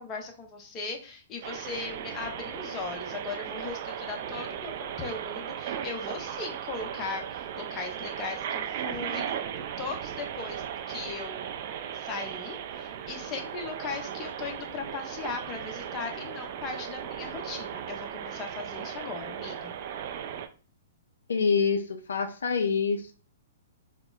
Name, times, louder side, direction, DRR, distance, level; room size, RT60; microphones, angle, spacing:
voice 1, 0.0-9.3 9.8-11.6 11.9-19.7, left 4 dB, 30° left, 3 dB, 0.7 m, -38 dB
sound 1, 1.4-20.5, right 9 dB, 50° right, 0.3 m, -37 dB
voice 2, 21.3-23.1, left 5 dB, 85° left, 8 dB, 0.3 m, -26 dB
4.1 x 2.0 x 2.3 m, 0.36 s
hypercardioid pair, 130°, 0 cm